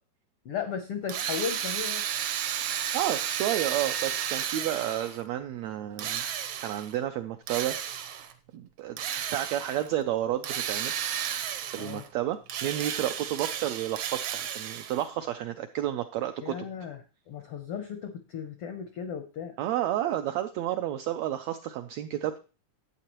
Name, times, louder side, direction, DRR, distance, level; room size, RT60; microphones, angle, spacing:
voice 1, 0.4-2.1 11.8-12.0 16.4-17.0 17.3-19.6, left 7 dB, 85° left, 7 dB, 1.2 m, -35 dB
Drill, 1.1-5.2 6.0-6.9 7.5-8.3 9.0-9.9 10.4-12.1 12.5-15.1, right 9 dB, 70° right, 1.6 m, -33 dB
voice 2, 2.6-6.2 6.6-7.8 8.5-10.9 11.7-16.6 19.6-22.4, right 12 dB, 85° right, 8 dB, 1.5 m, -31 dB
11.5 x 8.2 x 3.0 m, 0.33 s
omnidirectional pair, 3.6 m